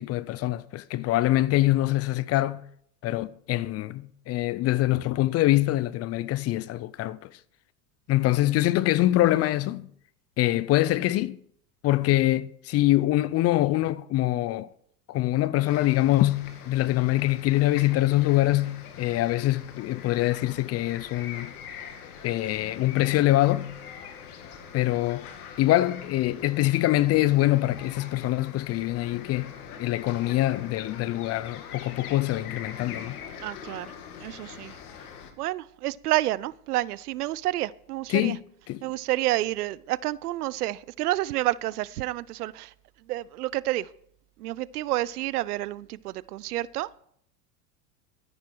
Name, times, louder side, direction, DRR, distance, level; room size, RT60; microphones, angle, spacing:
voice 1, 0.0-2.6 3.0-7.3 8.1-9.9 10.4-11.4 11.8-14.7 15.1-21.5 22.2-23.8 24.7-25.3 25.6-33.2 38.1-38.4 38.7-38.8, left 16 dB, 35° left, 0.5 m, -24 dB
sound 1, 15.7-35.3, left 7 dB, 80° left, 2.2 m, -43 dB
voice 2, 33.4-33.9 34.2-34.8 35.4-38.4 38.8-42.7 43.1-43.9 44.4-46.9, right 16 dB, 85° right, 0.6 m, -29 dB
13.0 x 10.5 x 4.6 m
hypercardioid pair, 105°, 44 cm